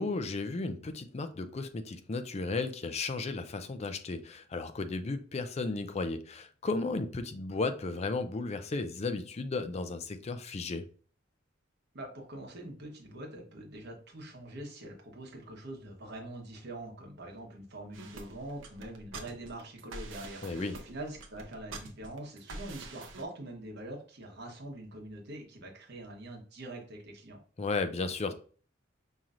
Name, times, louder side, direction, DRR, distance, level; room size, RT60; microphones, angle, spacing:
voice 1, 0.0-10.8 20.4-20.8 27.6-28.3, left 3 dB, 35° left, 0.4 m, -34 dB
voice 2, 11.9-27.4, right 1 dB, 60° right, 1.2 m, -44 dB
sound 1, 17.9-23.2, right 3 dB, 80° right, 0.7 m, -45 dB
5.5 x 3.0 x 2.5 m
head